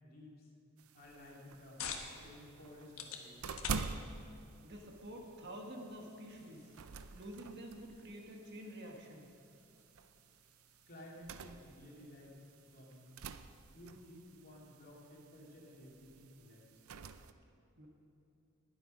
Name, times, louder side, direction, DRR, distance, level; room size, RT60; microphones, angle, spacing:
voice 1, 0.0-0.5 0.9-1.8 2.2-3.7 10.9-12.3 12.7-13.2 13.7-16.6, left 1 dB, 45° left, -3 dB, 2.7 m, -55 dB
sound 1, 0.8-17.3, right 5 dB, 80° right, 0.6 m, -48 dB
sound 2, 1.2-16.3, left 6 dB, 70° left, 1.3 m, -53 dB
voice 2, 4.6-6.7 7.1-9.3 17.8-17.9, equal, 55° right, 1 dB, 1.7 m, -49 dB
20.0 x 7.9 x 5.2 m, 2.8 s
head